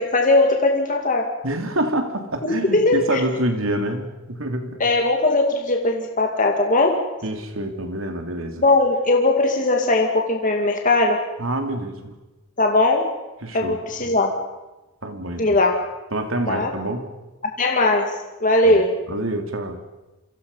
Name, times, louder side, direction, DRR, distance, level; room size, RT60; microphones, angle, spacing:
voice 1, 0.0-1.3 2.6-3.2 4.8-7.0 8.6-11.2 12.6-13.1 13.5-14.3 15.4-15.7 16.5-16.7 17.6-18.1 18.4-19.0, left 2 dB, 40° left, 2 dB, 2.3 m, -19 dB
voice 2, 1.4-4.8 7.2-8.6 11.4-12.1 13.4-14.2 15.0-15.5 16.1-17.1 18.6-18.8 19.1-19.8, right 1 dB, 80° right, 5 dB, 3.2 m, -27 dB
28.5 x 24.5 x 5.7 m, 1.1 s
head